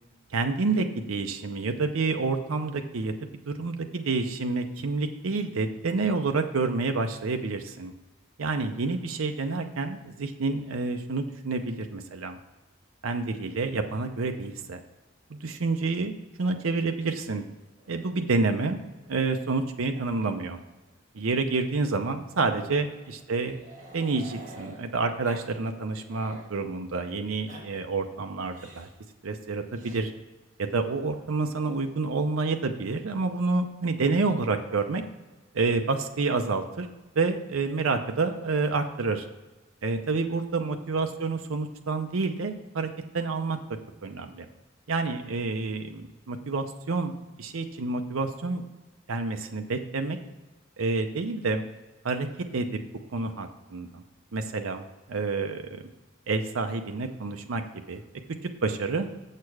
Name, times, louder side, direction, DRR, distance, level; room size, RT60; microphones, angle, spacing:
voice 1, 0.3-3.1 3.5-7.9 8.4-12.4 13.0-14.8 15.3-17.4 17.9-18.8 19.1-20.6 21.1-23.6 23.9-28.9 29.2-30.1 30.6-35.0 35.5-36.9 37.2-39.3 39.8-42.9 43.1-43.6 44.0-44.5 44.9-47.1 47.4-48.6 49.1-50.2 50.8-51.6 52.0-52.3 52.5-52.7 53.1-54.0 54.3-55.8 56.3-57.6 57.9-58.0 58.6-59.1, right 3 dB, 90° right, 5 dB, 0.6 m, -28 dB
Growling, 17.8-19.6 19.9-20.1 20.3-20.5 20.8-20.9 22.0-24.8 25.2-25.5 25.8-26.5 27.2-27.6 28.5-28.9 29.7-30.0 31.1-31.8, right 2 dB, 35° right, 1.6 m, -50 dB
7.5 x 6.7 x 4.7 m, 1.2 s
head